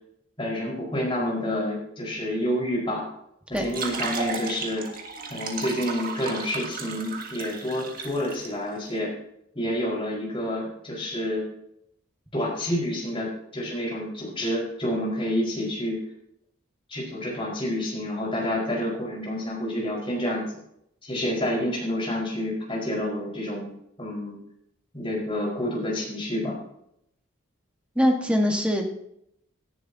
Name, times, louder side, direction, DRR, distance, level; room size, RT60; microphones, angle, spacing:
voice 1, 0.4-3.0 3.5-4.9 5.3-9.1 9.5-11.5 12.3-16.0 16.9-20.4 21.0-23.7 24.0-24.4 24.9-26.6, left 1 dB, 25° left, -3 dB, 4.7 m, -28 dB
sound 1, 3.5-8.5, right 4 dB, 45° right, 1.8 m, -34 dB
voice 2, 27.9-28.9, equal, 5° right, 2 dB, 1.5 m, -22 dB
17.5 x 11.0 x 2.8 m, 0.74 s
head